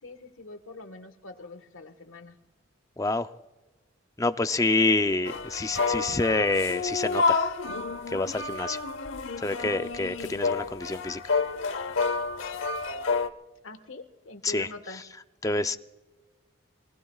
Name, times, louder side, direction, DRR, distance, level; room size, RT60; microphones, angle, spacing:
voice 1, 0.0-2.4 13.6-15.0, left 2 dB, 90° left, 9 dB, 1.5 m, -44 dB
voice 2, 3.0-3.3 4.2-7.4 8.1-8.8 9.4-11.2 14.4-14.7 15.4-15.8, left 2 dB, 15° left, 10 dB, 0.5 m, -27 dB
sound 1, 5.3-13.3, left 4 dB, 70° left, 0.9 m, -29 dB
25.5 x 20.0 x 2.4 m, 1.2 s
head